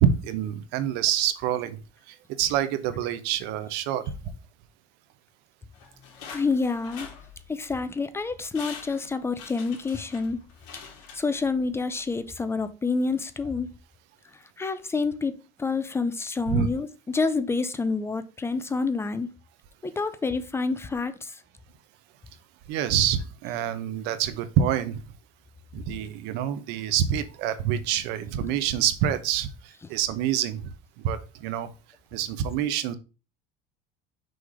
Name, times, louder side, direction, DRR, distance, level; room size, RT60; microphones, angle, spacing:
voice 1, 0.0-1.8 2.1-4.1 16.5-16.7 22.7-25.0 25.7-30.7 31.0-31.7 32.1-32.9, right 9 dB, 70° right, 0.8 m, -26 dB
sound 1, 5.7-7.8 8.2-8.3 8.5-11.7 12.1-12.2, left 6 dB, 75° left, 2.6 m, -44 dB
voice 2, 6.3-7.1 7.5-10.4 11.2-13.7 14.6-19.3 19.8-21.1, left 4 dB, 15° left, 0.5 m, -28 dB
6.1 x 3.3 x 4.9 m
cardioid pair, 140°, 18 cm